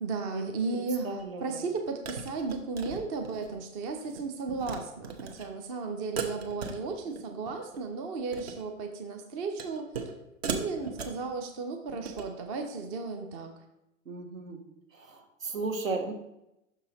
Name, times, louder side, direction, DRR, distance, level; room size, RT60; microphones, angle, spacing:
voice 1, 0.0-10.0 10.4-13.5, right 4 dB, 20° right, 4 dB, 0.5 m, -35 dB
voice 2, 1.0-1.6 14.1-14.6 14.9-16.1, right 3 dB, 75° right, 4 dB, 1.4 m, -35 dB
sound 1, 1.2-1.3 2.0-3.6 3.9-4.2 4.5-4.8 5.0-5.5 6.2-7.2 7.5-7.8 8.2-8.6 9.6-10.1 10.4-11.2 11.9-12.3, right 6 dB, 50° right, 1.0 m, -37 dB
6.3 x 5.4 x 3.9 m, 0.87 s
figure-of-eight pair, 110°, 40 cm